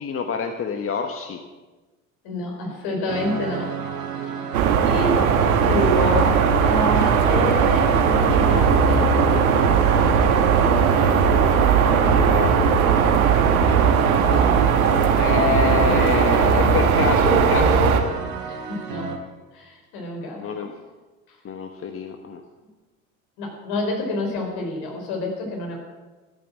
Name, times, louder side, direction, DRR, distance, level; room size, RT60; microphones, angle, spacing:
voice 1, 0.0-1.4 5.1-5.3 11.9-12.5 15.2-17.9 20.4-20.7 21.4-22.4, left 6 dB, 30° left, 6 dB, 1.2 m, -26 dB
voice 2, 2.2-3.7 4.2-4.4 4.8-5.2 5.6-9.1 18.5-19.1 19.5-20.4 21.3-21.4 23.4-25.8, left 1 dB, 60° left, 1 dB, 4.6 m, -28 dB
sound 1, 3.1-19.2, right 5 dB, 55° right, 3.1 m, -32 dB
sound 2, 4.5-18.0, right 6 dB, 80° right, 1.5 m, -18 dB
14.0 x 8.7 x 7.3 m, 1.2 s
hypercardioid pair, 75°, 42 cm